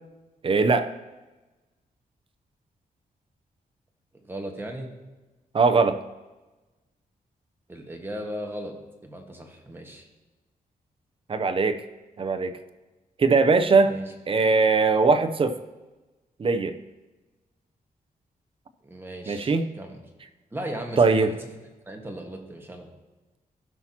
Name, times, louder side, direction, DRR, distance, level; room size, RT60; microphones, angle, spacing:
voice 1, 0.4-0.9 5.5-6.0 11.3-11.8 12.2-12.5 13.2-13.9 14.3-15.6 16.4-16.7 19.3-19.6 21.0-21.3, right 4 dB, 35° right, 8 dB, 0.6 m, -20 dB
voice 2, 4.1-4.9 7.7-8.7 9.0-10.1 13.8-14.0 18.8-20.0 20.5-21.5 21.8-22.9, right 1 dB, 15° right, 1 dB, 1.5 m, -37 dB
15.5 x 5.9 x 2.9 m, 1.2 s
wide cardioid pair, 115°, 15 cm